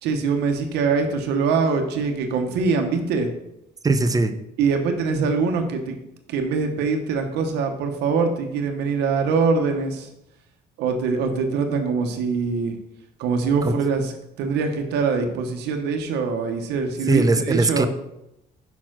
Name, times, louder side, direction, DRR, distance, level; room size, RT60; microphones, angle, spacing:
voice 1, 0.0-3.3 4.6-6.0 6.3-10.1 10.8-12.8 13.2-17.9, right 5 dB, 85° right, 4 dB, 1.0 m, -23 dB
voice 2, 3.8-4.3 13.6-13.7 17.1-17.9, right 3 dB, 20° right, 10 dB, 0.6 m, -19 dB
5.9 x 4.4 x 6.1 m, 0.84 s
cardioid pair, 110°, 17 cm